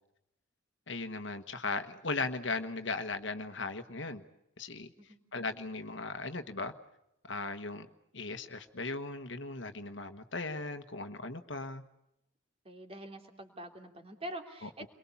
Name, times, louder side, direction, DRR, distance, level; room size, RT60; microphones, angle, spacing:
voice 1, 0.9-4.2 4.6-4.9 5.3-6.7 7.2-7.9 8.1-11.8 14.6-14.7, left 3 dB, 65° left, 8 dB, 1.4 m, -37 dB
voice 2, 12.6-14.9, right 1 dB, 30° right, 5 dB, 3.1 m, -45 dB
30.0 x 23.0 x 7.2 m, 0.85 s
head